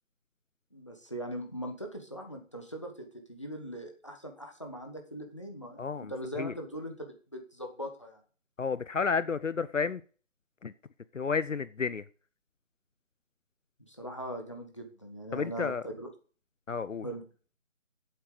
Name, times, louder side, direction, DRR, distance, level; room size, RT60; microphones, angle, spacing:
voice 1, 0.7-8.2 13.9-16.1 17.0-17.2, equal, 25° left, 1.2 m, -40 dB
voice 2, 5.8-6.1 6.4-6.5 8.6-10.0 10.6-10.7 11.1-12.0 15.3-15.8 16.7-17.1, left 5 dB, 70° left, 0.6 m, -31 dB
8.1 x 7.5 x 6.7 m
figure-of-eight pair, 175°, 39 cm